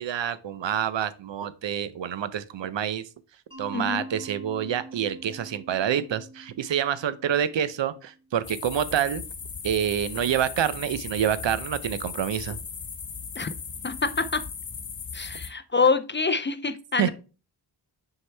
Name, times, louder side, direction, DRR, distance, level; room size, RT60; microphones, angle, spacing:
voice 1, 0.0-3.0 3.6-9.2 9.6-12.6 17.0-17.1, right 9 dB, 75° right, 0.6 m, -27 dB
Mallet percussion, 3.5-8.3, right 2 dB, 10° right, 1.9 m, -45 dB
voice 2, 3.7-4.0 13.4-13.5 13.8-14.4 15.1-17.1, left 4 dB, 25° left, 0.4 m, -25 dB
sound 1, 8.4-15.5, left 6 dB, 50° left, 1.0 m, -37 dB
6.3 x 4.6 x 3.4 m
wide cardioid pair, 90°, 44 cm